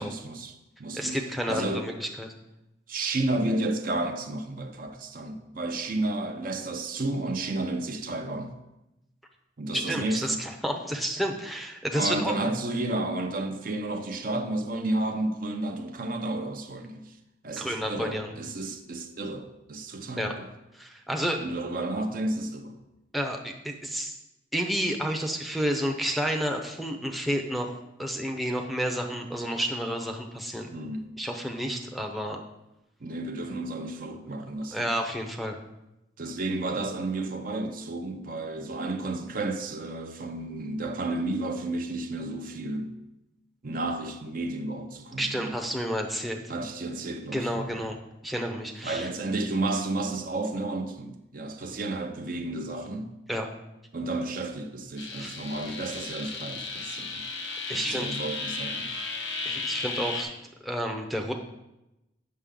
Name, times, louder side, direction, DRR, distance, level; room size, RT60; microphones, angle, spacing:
voice 1, 0.0-1.2 1.4-1.9 2.9-8.6 9.6-10.4 11.9-17.1 17.4-20.5 21.4-22.8 30.7-31.0 33.0-34.9 36.2-42.9 43.6-45.5 46.5-47.8 48.8-53.1 53.9-57.2 57.7-59.0, right 2 dB, 50° right, 0.7 m, -32 dB
voice 2, 0.9-2.3 9.7-12.3 17.6-18.3 20.2-20.3 20.7-21.4 23.1-24.1 24.5-30.7 31.2-32.4 34.7-35.6 45.2-46.4 47.3-48.0 48.2-49.1 53.3-53.5 55.2-55.3 57.7-58.1 59.5-60.3 60.6-61.3, equal, ahead, 0.6 m, -30 dB
sound 1, 55.0-60.2, left 4 dB, 85° left, 1.3 m, -34 dB
8.5 x 6.5 x 3.8 m
head